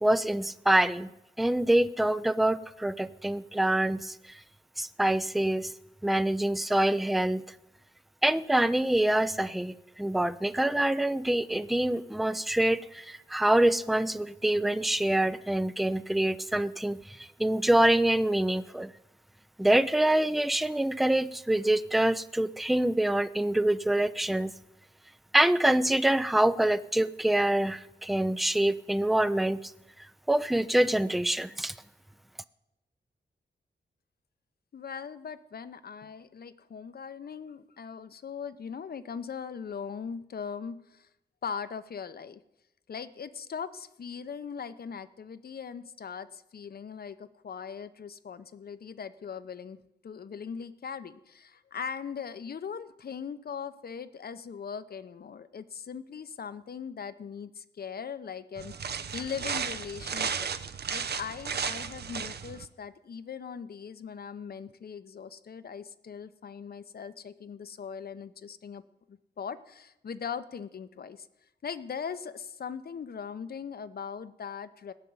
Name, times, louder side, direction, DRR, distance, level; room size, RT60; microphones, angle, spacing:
voice 1, 0.0-1.1 1.4-4.2 4.8-5.7 6.0-7.4 8.2-18.9 19.6-24.5 25.3-29.7 30.3-31.7, right 1 dB, ahead, 15 dB, 0.4 m, -25 dB
voice 2, 34.7-41.1 41.4-42.4 42.9-49.8 50.0-60.5 60.9-68.8 69.1-71.3 71.6-74.9, left 6 dB, 60° left, 13 dB, 0.8 m, -40 dB
sound 1, 58.6-62.7, right 6 dB, 65° right, 0.8 m, -34 dB
18.0 x 6.8 x 9.4 m, 0.89 s
wide cardioid pair, 130°, 18 cm